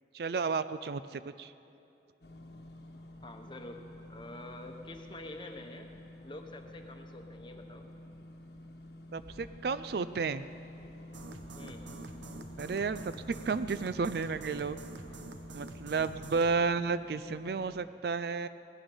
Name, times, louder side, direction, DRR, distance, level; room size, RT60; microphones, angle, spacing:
voice 1, 0.1-1.5 9.1-10.5 12.6-14.8 15.5-18.5, right 4 dB, 60° right, 13 dB, 0.4 m, -32 dB
sound 1, 2.2-17.8, left 1 dB, 65° left, 1.2 m, -49 dB
voice 2, 3.2-3.8 4.1-5.9 6.2-7.9 11.6-11.9, left 1 dB, 25° left, 4 dB, 1.0 m, -46 dB
sound 2, 11.1-16.6, right 2 dB, 80° right, 0.8 m, -47 dB
18.0 x 12.0 x 5.5 m, 2.6 s
head